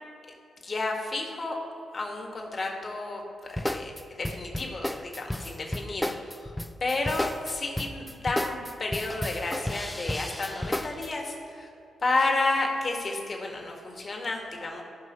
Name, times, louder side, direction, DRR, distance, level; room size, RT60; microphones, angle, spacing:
voice 1, 0.6-1.6 1.9-3.2 3.6-6.5 6.8-11.7 12.0-14.8, left 2 dB, 45° left, 1 dB, 1.9 m, -31 dB
sound 1, 3.6-11.1, left 1 dB, 10° left, 0.5 m, -32 dB
16.5 x 5.5 x 3.2 m, 2.6 s
hypercardioid pair, 45°, 0 cm